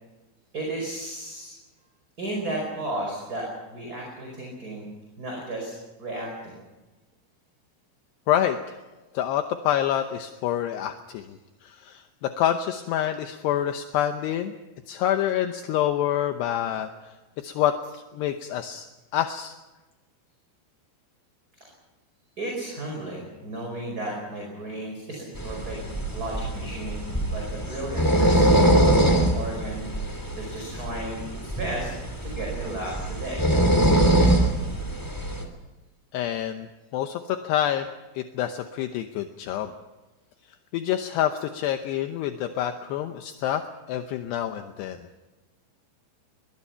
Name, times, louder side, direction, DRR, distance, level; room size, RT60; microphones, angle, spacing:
voice 1, 0.5-1.5 2.2-4.9 5.2-6.6 22.4-25.8 26.1-27.1 27.3-31.9 32.2-33.4, right 1 dB, 20° right, -1 dB, 4.9 m, -34 dB
voice 2, 8.3-8.8 9.1-14.5 14.9-18.9 19.1-19.6 36.1-37.9 38.1-39.7 40.7-45.0, left 11 dB, 75° left, 7 dB, 2.5 m, -27 dB
sound 1, 25.3-35.4, right 1 dB, 10° left, 1.4 m, -23 dB
23.0 x 22.0 x 5.8 m, 1.1 s
omnidirectional pair, 5.8 m